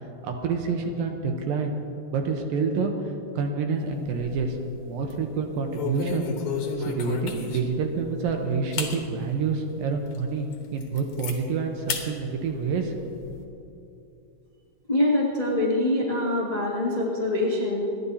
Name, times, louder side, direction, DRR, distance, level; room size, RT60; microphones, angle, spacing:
voice 1, 0.2-1.7 2.1-2.9 3.4-4.6 4.9-6.3 6.9-12.9 13.2-13.3, right 5 dB, 75° right, 3 dB, 2.4 m, -27 dB
sound 1, 3.9-4.6 5.0-5.2 5.7-7.8 8.3-8.4 8.7-9.0 9.5-9.6 10.1-10.2 10.5-11.4 11.9-12.1 12.5-13.4, left 5 dB, 60° left, 1.9 m, -32 dB
voice 2, 14.9-17.8, left 1 dB, 85° left, -5 dB, 0.3 m, -24 dB
28.5 x 11.0 x 2.8 m, 2.9 s
omnidirectional pair, 4.6 m